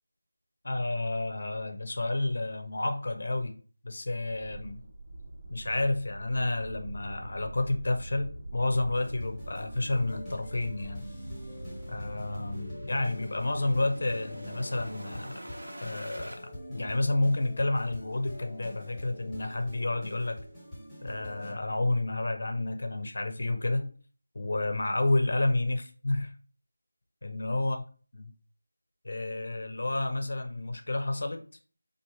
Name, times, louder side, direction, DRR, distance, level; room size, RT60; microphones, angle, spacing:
voice 1, 0.6-3.5 3.8-4.8 5.5-11.1 11.9-15.4 15.8-20.4 21.0-23.9 24.3-26.3 27.2-27.8 29.0-31.4, left 2 dB, 55° left, 6 dB, 0.6 m, -30 dB
sound 1, 4.3-16.4, right 1 dB, 65° right, 0.8 m, -43 dB
sound 2, 8.9-21.5, left 1 dB, 5° right, 1.0 m, -45 dB
4.7 x 2.4 x 2.9 m, 0.40 s
figure-of-eight pair, 175°, 0 cm